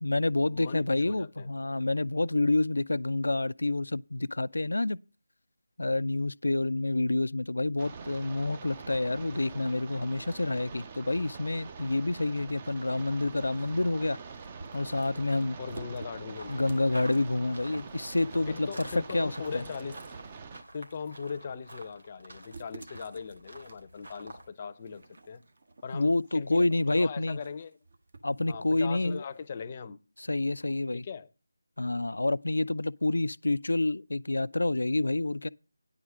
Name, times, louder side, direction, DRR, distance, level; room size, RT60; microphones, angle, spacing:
voice 1, 0.0-5.0 5.8-14.2 14.7-15.6 16.5-19.6 25.9-27.4 28.2-29.2 30.2-31.0 31.8-35.5, left 2 dB, 80° left, 0.4 m, -28 dB
voice 2, 0.5-1.5 15.6-16.8 18.5-20.0 20.7-25.4 25.8-27.8 28.5-30.0 30.9-31.3, left 5 dB, 30° left, 0.6 m, -39 dB
sound 1, 7.8-20.6, right 5 dB, 25° right, 0.6 m, -45 dB
horse chewing tree bark, 12.9-29.6, right 3 dB, 60° right, 1.5 m, -54 dB
sound 2, 16.3-24.5, right 1 dB, 85° right, 3.0 m, -50 dB
9.9 x 4.9 x 7.4 m
figure-of-eight pair, 165°, 0 cm